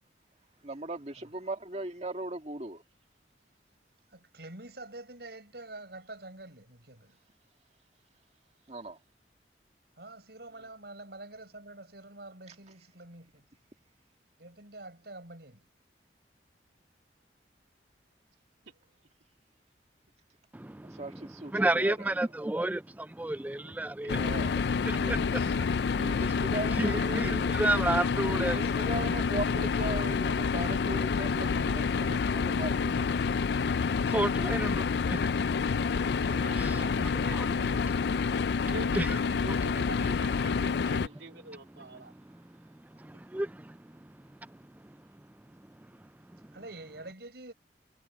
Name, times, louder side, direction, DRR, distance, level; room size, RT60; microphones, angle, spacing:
voice 1, 0.6-2.8 8.7-9.0 12.5-12.6 20.7-22.3 24.1-24.6 25.0-25.5 26.0-27.6 28.3-33.1, right 1 dB, 35° right, 2.0 m, -39 dB
voice 2, 4.1-7.2 10.0-13.4 14.4-15.6 36.3-36.4 46.5-47.5, right 2 dB, 65° right, 6.5 m, -46 dB
voice 3, 20.5-21.2 21.5-24.2 24.9-25.2 26.7-28.7 33.7-36.0 36.6-37.5 38.9-39.2 41.7-45.0 45.5-45.9 46.3-46.6, right 1 dB, 10° right, 0.3 m, -33 dB
sound 1, 24.1-41.1, left 5 dB, 65° left, 0.4 m, -28 dB
voice 4, 36.2-37.9 38.6-42.1, right 2 dB, 85° right, 3.7 m, -44 dB
head